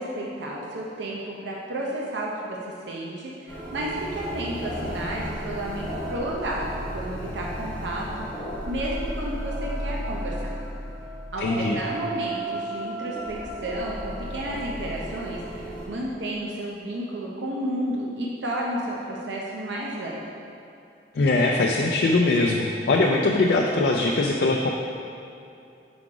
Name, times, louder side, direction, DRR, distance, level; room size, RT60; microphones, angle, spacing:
voice 1, 0.0-8.3 8.7-10.6 11.3-20.2, right 1 dB, 85° right, -3 dB, 0.7 m, -32 dB
sound 1, 3.5-15.9, right 1 dB, 10° left, 1.1 m, -34 dB
voice 2, 11.4-11.8 21.1-24.7, left 2 dB, 60° left, 0 dB, 0.4 m, -21 dB
5.9 x 4.8 x 3.8 m, 2.6 s
head